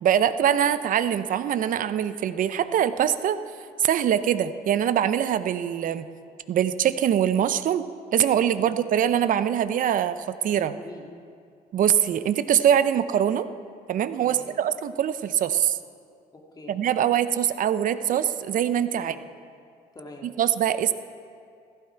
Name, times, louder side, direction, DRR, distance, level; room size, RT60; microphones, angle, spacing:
voice 1, 0.0-3.4 3.8-6.1 6.5-7.8 8.1-10.7 11.7-13.5 13.9-15.8 16.7-19.1 20.4-20.9, right 9 dB, 55° right, 13 dB, 0.7 m, -23 dB
voice 2, 10.7-11.1 14.2-14.5 16.3-16.8 18.9-19.2 19.9-20.3, left 2 dB, 25° left, 0 dB, 2.4 m, -44 dB
15.5 x 15.0 x 4.6 m, 2.3 s
cardioid pair, 110°, 17 cm